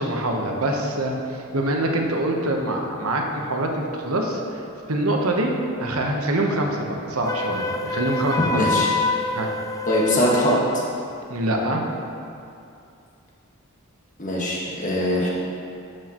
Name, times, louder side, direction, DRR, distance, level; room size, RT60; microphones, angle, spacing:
voice 1, 0.0-4.6 4.9-5.5 5.8-8.7 9.3-9.5 11.3-11.8, right 1 dB, 85° right, 1 dB, 1.0 m, -24 dB
Wind instrument woodwind instrument, 7.2-10.7, left 3 dB, 15° left, 0.4 m, -26 dB
voice 2, 8.5-8.9 9.9-10.8 14.2-15.3, equal, 35° left, -4 dB, 1.5 m, -22 dB
12.5 x 6.4 x 3.0 m, 2.6 s
head